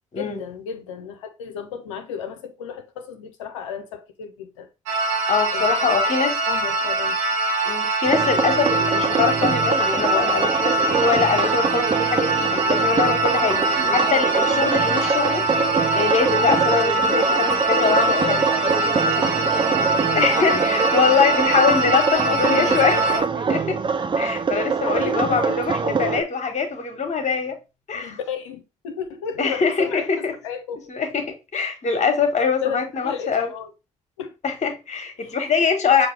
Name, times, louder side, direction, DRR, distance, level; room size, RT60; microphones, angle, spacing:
voice 1, 0.2-4.7 5.5-6.0 6.5-7.2 16.9-18.8 19.0-19.7 20.4-20.6 21.7-23.1 24.8-26.3 27.9-30.9 32.6-33.7 34.2-34.4 35.2-35.4, left 7 dB, 90° left, 0.5 m, -33 dB
sound 1, 4.9-23.2, right 2 dB, 90° right, 0.9 m, -23 dB
voice 2, 5.3-6.3 7.6-15.4 15.9-18.4 20.1-23.2 23.5-23.8 24.2-27.6 27.9-28.2 29.4-30.3 30.9-33.5 34.4-36.1, left 5 dB, 50° left, 1.3 m, -23 dB
sound 2, 8.1-26.2, right 5 dB, 30° right, 0.6 m, -24 dB
5.9 x 2.6 x 3.1 m
hypercardioid pair, 45°, 15 cm